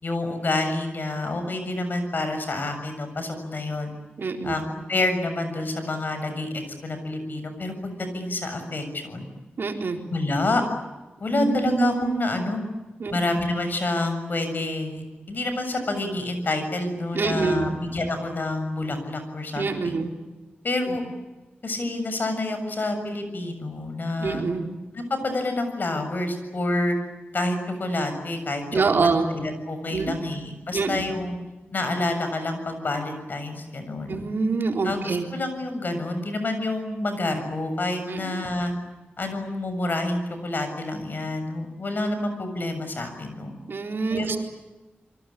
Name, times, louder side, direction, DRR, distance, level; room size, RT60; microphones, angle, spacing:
voice 1, 0.0-3.9 4.4-9.3 10.1-10.6 11.2-12.6 13.1-20.0 20.6-21.0 21.6-24.4 24.9-27.0 27.3-31.4 31.7-34.2 34.8-38.7 39.2-43.6 44.1-44.4, left 2 dB, 55° left, 8 dB, 7.1 m, -28 dB
voice 2, 4.2-4.5 9.6-10.0 11.3-12.3 13.0-13.2 17.1-17.7 19.5-20.1 20.9-21.0 24.2-24.7 28.7-29.3 29.9-30.2 30.7-31.0 34.1-35.3 38.1-38.4 43.7-44.4, right 4 dB, 70° right, 3 dB, 4.1 m, -25 dB
28.0 x 23.5 x 8.7 m, 1.2 s
wide cardioid pair, 115°, 4 cm